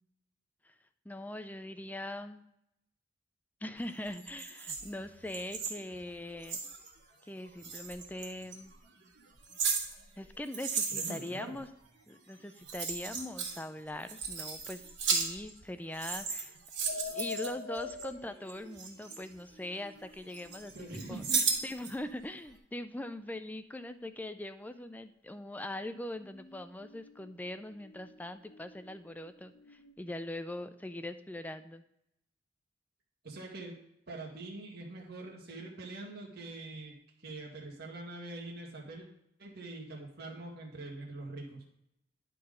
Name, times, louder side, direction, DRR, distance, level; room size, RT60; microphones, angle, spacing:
voice 1, 1.1-2.4 3.6-6.6 7.2-8.7 10.2-11.7 12.1-16.6 17.1-20.7 21.1-31.8, left 1 dB, 10° left, 10 dB, 0.4 m, -41 dB
sound 1, 4.1-6.9 7.6-8.6 9.2-11.4 12.3-12.4 12.6-13.6 13.9-15.7 15.9-18.0 18.5-19.9 20.3-21.9 22.3-22.4, right 5 dB, 70° right, 2.2 m, -35 dB
voice 2, 10.9-11.6 20.7-21.4 33.2-33.7 34.1-36.9 37.2-39.1 39.4-41.6, right 2 dB, 55° right, -2 dB, 1.8 m, -44 dB
sound 2, 16.9-22.0 23.8-24.1 25.9-29.9, left 4 dB, 70° left, 1.2 m, -47 dB
11.0 x 3.9 x 5.0 m, 0.79 s
head